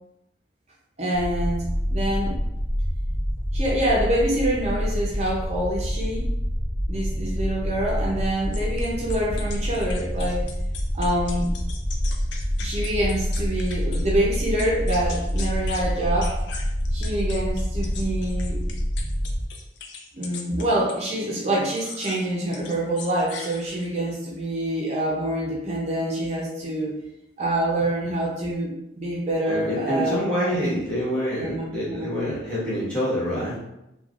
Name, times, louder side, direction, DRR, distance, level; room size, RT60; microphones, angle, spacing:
voice 1, 1.0-2.4 3.5-6.3 6.9-10.5 10.9-11.5 12.6-16.4 16.9-18.6 20.1-27.0 27.4-30.6 31.4-32.1, right 1 dB, 35° right, -4 dB, 0.5 m, -26 dB
sound 1, 1.1-19.4, equal, 85° left, 0.8 m, -27 dB
sound 2, 8.5-14.0 14.3-15.9 16.2-21.1 21.6-22.2 22.5-24.0, left 5 dB, 65° left, 0.4 m, -40 dB
voice 2, 29.4-33.6, equal, 5° left, -10 dB, 1.1 m, -27 dB
3.2 x 2.2 x 2.3 m, 0.87 s
head